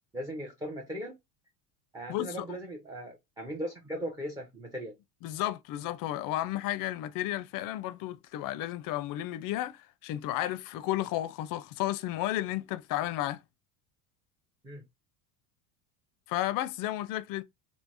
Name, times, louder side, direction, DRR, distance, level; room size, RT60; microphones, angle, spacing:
voice 1, 0.1-1.2 1.9-4.9 14.6-14.8, right 1 dB, 10° right, 0.4 m, -38 dB
voice 2, 2.1-2.5 5.2-13.4 16.3-17.4, left 14 dB, 45° left, 0.4 m, -33 dB
3.2 x 2.0 x 2.5 m
supercardioid pair, 110°, 47 cm